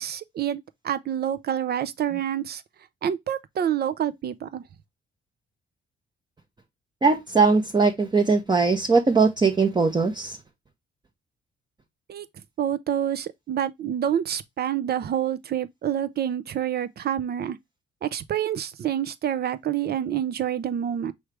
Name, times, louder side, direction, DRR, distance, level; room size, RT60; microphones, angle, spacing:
voice 1, 0.0-2.6 3.0-4.6 12.1-12.3 12.6-17.6 18.0-21.1, right 10 dB, 55° right, 0.6 m, -27 dB
voice 2, 7.0-10.4, right 4 dB, 20° right, 0.8 m, -20 dB
4.9 x 3.2 x 3.2 m
cardioid pair, 90°, 20 cm